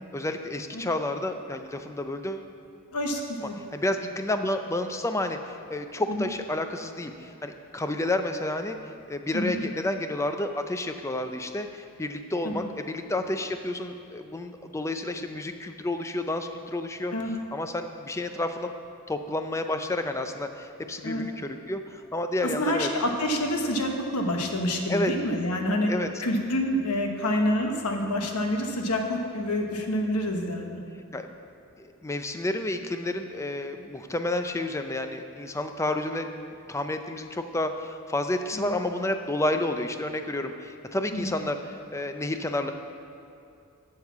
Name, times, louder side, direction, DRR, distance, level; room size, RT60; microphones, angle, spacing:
voice 1, 0.1-2.5 3.6-8.8 9.1-17.1 17.5-18.7 19.1-22.9 24.9-25.1 25.9-26.1 31.1-31.3 31.8-36.3 36.7-42.7, left 1 dB, 15° left, 7 dB, 0.4 m, -30 dB
voice 2, 2.9-3.5 6.1-6.3 9.3-9.6 12.4-12.6 17.1-17.3 21.0-21.2 22.4-25.9 26.2-30.8 38.5-38.7 41.1-41.3, left 1 dB, 85° left, 3 dB, 1.1 m, -27 dB
8.2 x 6.6 x 7.2 m, 2.6 s
head